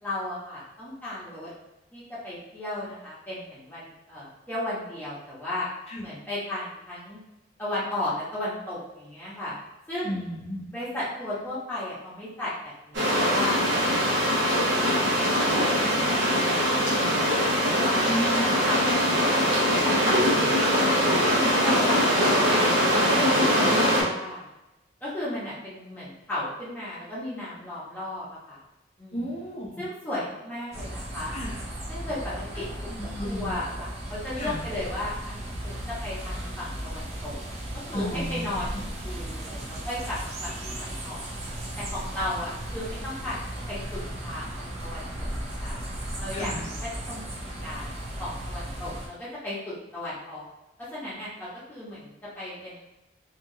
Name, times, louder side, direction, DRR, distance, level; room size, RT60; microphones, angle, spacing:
voice 1, 0.0-1.5 1.9-5.7 6.0-7.2 7.6-9.6 9.9-10.2 10.7-14.4 14.9-18.0 18.6-20.0 20.4-24.4 25.0-28.6 29.0-29.3 29.8-31.3 31.9-32.7 33.2-35.4 35.6-37.4 37.9-41.3 41.8-43.4 43.7-45.1 45.4-45.8 46.2-47.9 48.2-50.5 50.9-52.8, left 1 dB, 10° left, -10 dB, 0.9 m, -35 dB
voice 2, 10.0-10.7 18.0-18.5 23.8-24.1 29.1-29.8 31.3-31.6 33.0-33.6 34.4-34.6 37.9-38.5 46.3-46.6, equal, 30° left, -2 dB, 0.5 m, -33 dB
sound 1, 12.9-24.0, equal, 75° right, 1.0 m, -22 dB
sound 2, 30.7-49.1, right 1 dB, 35° right, 0.4 m, -36 dB
2.8 x 2.5 x 2.6 m, 0.97 s
head